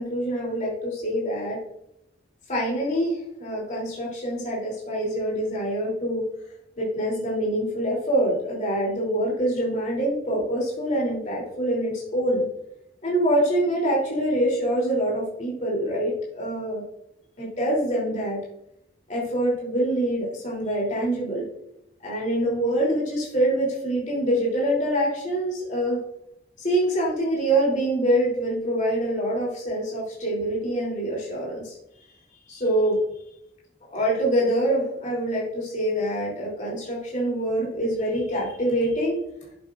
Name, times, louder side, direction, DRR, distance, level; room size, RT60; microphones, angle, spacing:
voice 1, 0.0-1.6 2.5-6.2 6.8-12.4 13.0-16.8 17.4-18.4 19.1-21.5 22.0-26.0 26.6-31.8 32.5-33.0 33.9-39.2, right 1 dB, 40° left, -4 dB, 3.1 m, -25 dB
11.5 x 8.3 x 2.5 m, 0.79 s
head